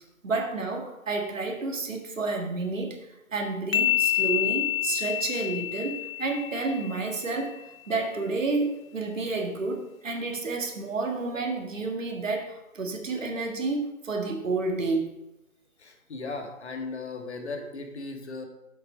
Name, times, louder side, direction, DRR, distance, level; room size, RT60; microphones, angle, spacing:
voice 1, 0.2-3.0 3.3-15.1, right 3 dB, 65° right, 3 dB, 1.8 m, -30 dB
sound 1, 3.7-7.3, left 12 dB, 70° left, 0.8 m, -28 dB
voice 2, 15.8-18.4, left 3 dB, 50° left, 5 dB, 1.6 m, -37 dB
7.5 x 6.8 x 5.1 m, 0.93 s
figure-of-eight pair, 160°, 42 cm